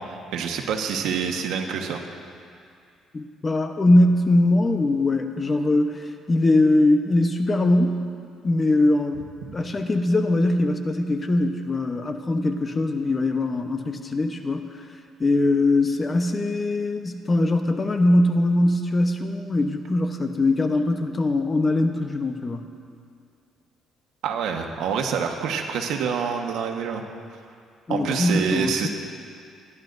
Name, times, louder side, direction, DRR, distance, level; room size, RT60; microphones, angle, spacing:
voice 1, 0.0-2.0 24.2-27.0 27.9-28.9, right 6 dB, 80° right, 3 dB, 1.3 m, -26 dB
voice 2, 3.1-8.1 8.4-9.2 9.5-14.8 15.2-22.7 27.9-28.9, left 2 dB, 30° left, 6 dB, 0.9 m, -21 dB
29.0 x 11.0 x 2.6 m, 2.4 s
cardioid pair, 105°, 0 cm